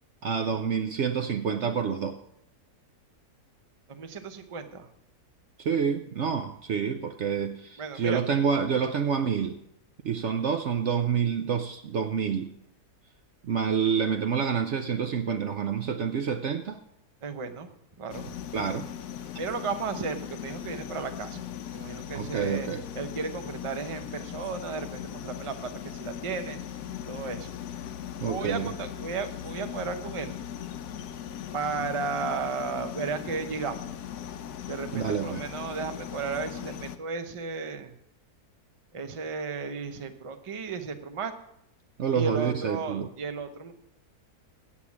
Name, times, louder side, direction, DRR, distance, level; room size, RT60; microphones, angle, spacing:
voice 1, 0.2-2.2 5.6-9.5 10.0-12.5 13.4-16.8 18.5-18.8 22.1-22.8 28.2-28.7 34.9-35.4 42.0-43.1, right 7 dB, 60° right, 7 dB, 0.8 m, -28 dB
voice 2, 3.9-4.9 7.8-8.2 17.2-17.7 18.0-18.3 19.4-22.7 22.9-26.6 27.1-27.5 28.2-30.4 31.5-33.8 34.7-37.9 38.9-41.3 42.1-43.7, right 4 dB, 30° right, 7 dB, 0.6 m, -34 dB
sound 1, 18.1-37.0, left 10 dB, 90° left, 1.2 m, -39 dB
8.6 x 8.1 x 7.2 m, 0.76 s
omnidirectional pair, 1.6 m